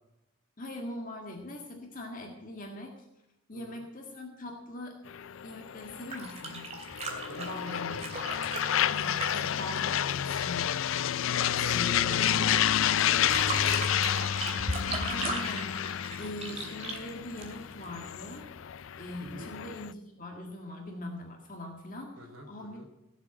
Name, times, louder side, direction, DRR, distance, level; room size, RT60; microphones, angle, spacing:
voice 1, 0.6-3.0 3.5-5.0 5.4-6.6 7.3-8.0 8.9-11.0 11.6-12.2 14.9-15.8 16.2-18.5 19.0-22.8, left 1 dB, 40° left, 1 dB, 1.8 m, -42 dB
voice 2, 3.5-3.8 7.1-7.5 7.8-8.2 11.3-14.9 19.2-19.5 22.2-22.9, right 1 dB, 70° right, -1 dB, 3.1 m, -46 dB
sound 1, 5.1-19.9, left 10 dB, 65° left, 0.4 m, -30 dB
sound 2, 5.9-10.6 13.0-17.9 19.3-19.4, right 2 dB, 30° right, 2.6 m, -37 dB
17.0 x 7.4 x 8.5 m, 0.93 s
head